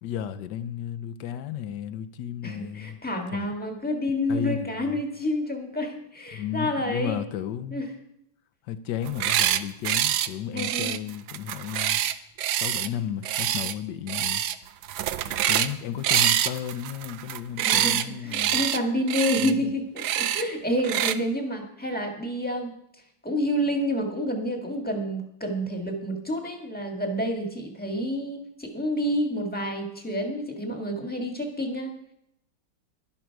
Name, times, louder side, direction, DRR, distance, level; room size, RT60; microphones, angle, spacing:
voice 1, 0.0-3.0 3.3-3.5 4.3-5.0 6.3-7.8 8.7-12.0 12.5-14.4 15.2-18.7 19.4-19.7, left 9 dB, 70° left, 1.2 m, -33 dB
voice 2, 2.4-7.2 7.7-7.9 10.5-10.9 17.6-22.7 23.2-31.9, equal, 5° left, 1.4 m, -29 dB
sound 1, 9.0-9.6 9.8-10.3 10.6-12.9 13.2-13.7 14.1-14.5 14.8-15.7 16.0-18.0 18.3-18.8 19.1-19.5 20.0-20.4 20.8-21.1, right 11 dB, 70° right, 1.0 m, -25 dB
11.5 x 11.5 x 4.6 m
omnidirectional pair, 2.1 m